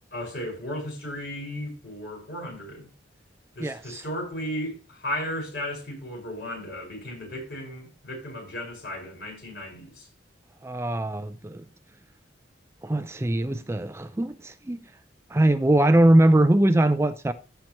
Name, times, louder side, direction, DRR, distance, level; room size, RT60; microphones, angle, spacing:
voice 1, 0.1-2.9 3.6-10.1, equal, 60° left, 5.6 m, -35 dB
voice 2, 3.6-4.0 10.6-11.6 12.8-14.8 15.3-17.3, right 1 dB, 15° right, 0.4 m, -21 dB
15.0 x 5.8 x 3.0 m
head